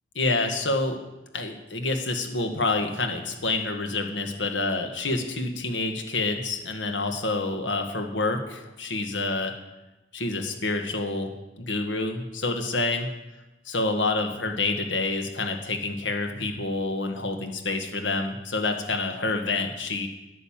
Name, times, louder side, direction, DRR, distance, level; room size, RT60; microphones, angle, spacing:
voice 1, 0.1-1.0 1.3-9.5 10.1-11.3 11.6-13.1 13.6-20.1, left 3 dB, 80° left, 5 dB, 1.5 m, -28 dB
10.5 x 9.3 x 7.3 m, 1.0 s
head